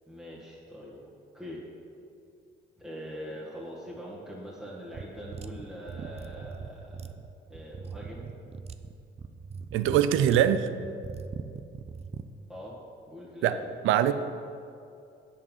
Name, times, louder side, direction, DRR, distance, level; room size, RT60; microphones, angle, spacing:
voice 1, 0.1-1.0 1.3-1.6 2.8-7.1 7.5-8.2 12.5-12.8 13.1-13.7, equal, 5° right, -7 dB, 1.8 m, -42 dB
sound 1, 4.9-12.3, right 5 dB, 30° right, 0.5 m, -41 dB
voice 2, 9.7-10.7 13.4-13.6 13.8-14.1, right 10 dB, 85° right, 12 dB, 0.5 m, -22 dB
8.5 x 7.2 x 5.6 m, 2.5 s
cardioid pair, 90°, 20 cm